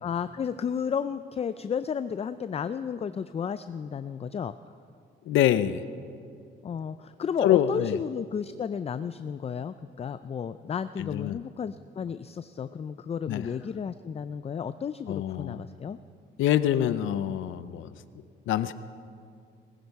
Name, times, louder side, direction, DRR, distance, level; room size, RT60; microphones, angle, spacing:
voice 1, 0.0-4.6 6.6-16.0, left 7 dB, 30° left, 12 dB, 0.4 m, -33 dB
voice 2, 5.3-5.8 7.4-8.0 11.0-11.4 13.3-13.5 15.1-15.6 16.4-17.9 18.5-18.7, left 11 dB, 80° left, 13 dB, 0.6 m, -25 dB
19.5 x 15.0 x 4.7 m, 2.3 s
cardioid pair, 90°, 20 cm